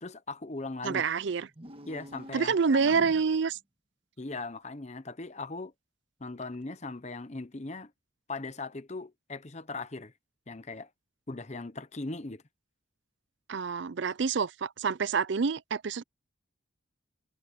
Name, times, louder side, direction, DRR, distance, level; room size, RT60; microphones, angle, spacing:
voice 1, 0.0-1.0 1.8-3.0 4.2-5.7 6.2-7.9 8.3-10.1 10.5-10.9 11.3-12.4, left 3 dB, 35° left, 0.9 m, -39 dB
voice 2, 0.8-1.5 2.3-3.6 13.5-16.0, right 5 dB, 60° right, 0.5 m, -27 dB
sound 1, 1.5-3.5, equal, 25° right, 1.5 m, -48 dB
head